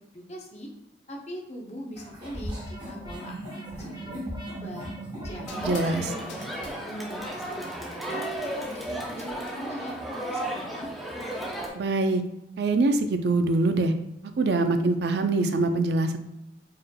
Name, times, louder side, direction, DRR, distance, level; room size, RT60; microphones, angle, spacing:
voice 1, 0.1-0.7 1.1-3.4 3.7-4.9 5.2-6.4 6.8-8.3 8.6-10.9, equal, 35° left, 0 dB, 0.7 m, -40 dB
sound 1, 2.0-6.9, right 1 dB, 25° right, 1.1 m, -38 dB
sound 2, 4.2-4.4 5.5-6.0 6.3-6.8 8.9-9.5, left 4 dB, 90° left, 0.6 m, -46 dB
Crowd, 5.5-11.7, right 1 dB, ahead, 0.5 m, -34 dB
voice 2, 5.6-6.1 11.7-12.2 12.6-13.9 14.4-16.2, right 2 dB, 60° right, 7 dB, 0.4 m, -24 dB
4.7 x 3.0 x 2.2 m, 0.87 s
head